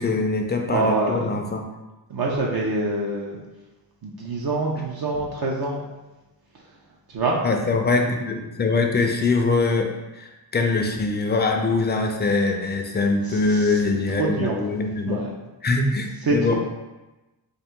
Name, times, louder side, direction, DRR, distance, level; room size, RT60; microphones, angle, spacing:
voice 1, 0.0-1.6 7.4-15.2 15.6-16.5, left 3 dB, 25° left, 3 dB, 0.4 m, -23 dB
voice 2, 0.7-1.4 2.1-3.4 4.0-5.8 7.1-7.4 13.2-13.8 14.2-14.6 15.1-15.3 16.3-16.5, right 2 dB, 55° right, -2 dB, 0.6 m, -25 dB
3.9 x 2.6 x 3.5 m, 1.1 s
wide cardioid pair, 140°, 43 cm